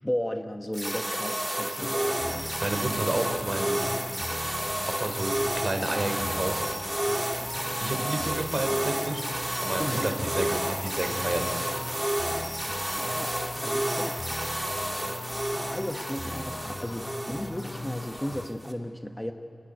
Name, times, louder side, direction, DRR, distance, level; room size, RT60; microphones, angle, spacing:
voice 1, 0.0-2.5 9.8-10.1 13.0-13.3 13.6-14.1 15.7-19.3, equal, 10° left, 5 dB, 1.1 m, -34 dB
sound 1, 0.7-18.7, right 1 dB, 15° right, 2.0 m, -31 dB
sound 2, 1.8-18.5, left 2 dB, 40° left, 0.8 m, -39 dB
voice 2, 2.6-3.8 4.9-6.6 7.8-9.2 9.6-11.4, right 2 dB, 40° right, 5 dB, 3.5 m, -30 dB
28.0 x 11.5 x 9.9 m, 2.8 s
cardioid pair, 60°, 0 cm